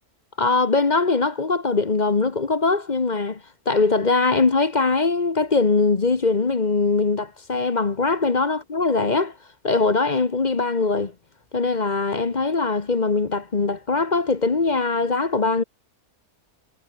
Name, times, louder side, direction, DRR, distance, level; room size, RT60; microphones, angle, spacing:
voice 1, 0.4-9.3 9.6-11.1 11.5-15.6, left 3 dB, 30° left, 1.1 m, -21 dB
omnidirectional pair, 1.6 m